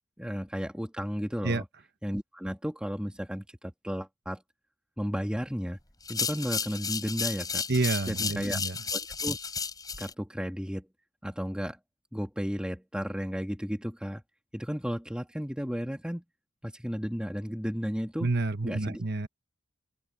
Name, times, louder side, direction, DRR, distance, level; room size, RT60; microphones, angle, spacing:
voice 1, 0.2-1.6 2.0-4.4 5.0-5.8 6.1-7.6 8.1-8.6 8.9-9.4 10.0-10.8 11.2-11.8 12.1-14.2 14.5-16.2 16.6-18.3 18.6-19.0, equal, 5° right, 2.5 m, -33 dB
sound 1, 6.0-10.1, left 5 dB, 20° left, 7.1 m, -33 dB
voice 2, 7.7-8.8 18.2-19.3, right 2 dB, 50° right, 1.2 m, -29 dB
head